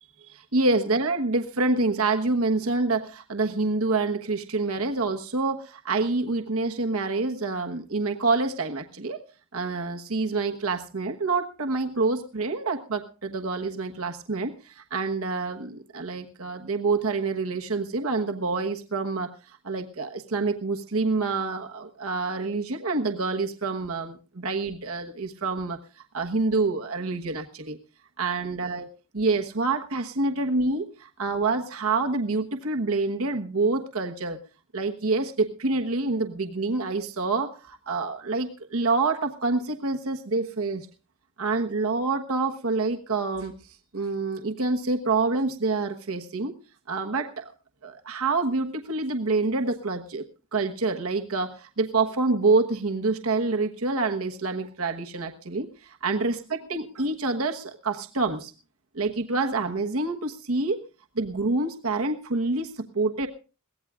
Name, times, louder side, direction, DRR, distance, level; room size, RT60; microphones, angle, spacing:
voice 1, 0.2-9.2 9.5-19.3 19.6-25.8 26.1-27.8 28.2-28.9 29.1-34.4 34.7-40.9 41.4-43.6 43.9-46.5 46.9-47.5 47.8-50.2 50.5-58.5 58.9-60.8 61.1-63.3, right 3 dB, 70° right, 4 dB, 1.2 m, -27 dB
22.0 x 17.0 x 2.4 m, 0.32 s
head